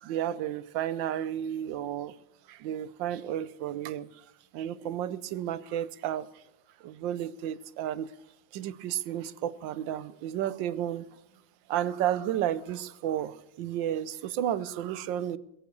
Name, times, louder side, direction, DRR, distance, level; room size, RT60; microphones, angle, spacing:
voice 1, 0.0-2.1 2.5-4.1 4.5-6.3 6.8-8.1 8.5-11.1 11.7-15.4, right 11 dB, 90° right, 16 dB, 1.4 m, -32 dB
22.0 x 8.3 x 6.8 m, 0.87 s
omnidirectional pair, 2.0 m